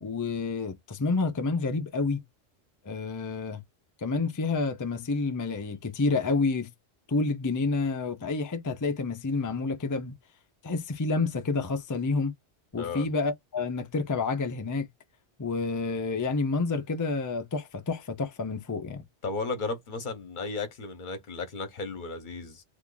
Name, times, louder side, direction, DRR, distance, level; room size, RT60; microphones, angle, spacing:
voice 1, 0.0-2.2 2.8-3.6 4.0-6.7 7.1-10.1 10.6-12.3 12.7-14.9 15.4-19.0, left 3 dB, 30° left, 0.3 m, -29 dB
voice 2, 12.8-13.1 19.2-22.6, left 3 dB, 45° left, 0.9 m, -34 dB
2.9 x 2.4 x 3.7 m
omnidirectional pair, 1.2 m